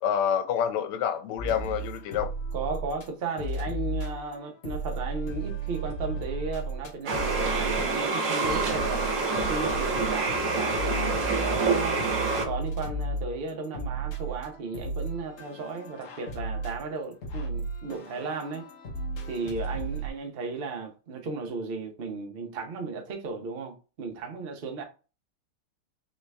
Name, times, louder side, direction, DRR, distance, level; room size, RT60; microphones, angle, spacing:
voice 1, 0.0-2.3, left 8 dB, 90° left, 1.6 m, -27 dB
sound 1, 1.4-3.1 3.4-20.1, right 2 dB, 70° left, 0.6 m, -35 dB
voice 2, 2.5-9.1 9.5-12.0 12.4-18.7 19.3-24.8, right 4 dB, 80° right, 0.5 m, -35 dB
sound 2, 7.1-12.5, right 3 dB, 55° right, 1.0 m, -27 dB
3.9 x 3.2 x 3.3 m
omnidirectional pair, 2.3 m